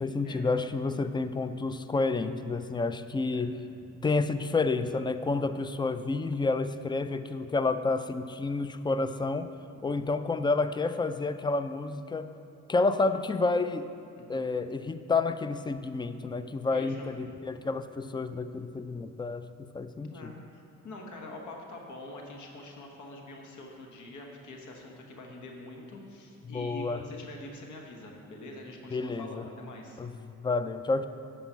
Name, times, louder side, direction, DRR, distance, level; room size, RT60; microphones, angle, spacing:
voice 1, 0.0-3.6 4.0-9.5 9.8-12.3 12.7-13.9 14.3-20.3 26.4-27.0 28.9-29.4 30.0-31.1, left 3 dB, 15° left, 11 dB, 0.3 m, -30 dB
voice 2, 3.3-3.8 9.9-10.0 14.2-14.5 16.7-17.1 18.7-18.8 20.0-30.0, left 1 dB, 75° left, 1 dB, 1.4 m, -45 dB
9.0 x 5.4 x 5.7 m, 2.4 s
cardioid pair, 90°, 30 cm